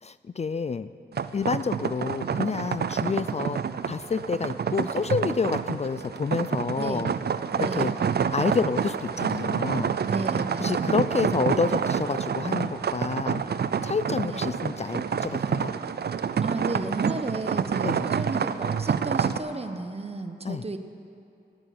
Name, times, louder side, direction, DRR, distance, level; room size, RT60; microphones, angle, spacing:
voice 1, 0.0-0.9 1.3-7.1 7.6-7.9 8.3-10.0 10.6-13.4 13.8-15.7 17.8-18.1 20.4-20.6, left 5 dB, 40° left, 14 dB, 0.4 m, -29 dB
sound 1, 1.1-19.4, right 7 dB, 70° right, 0.6 m, -28 dB
voice 2, 7.6-7.9 10.1-11.2 14.2-14.5 16.4-20.8, right 3 dB, 35° right, 8 dB, 1.1 m, -33 dB
17.0 x 8.8 x 9.4 m, 2.6 s
wide cardioid pair, 75°, 18 cm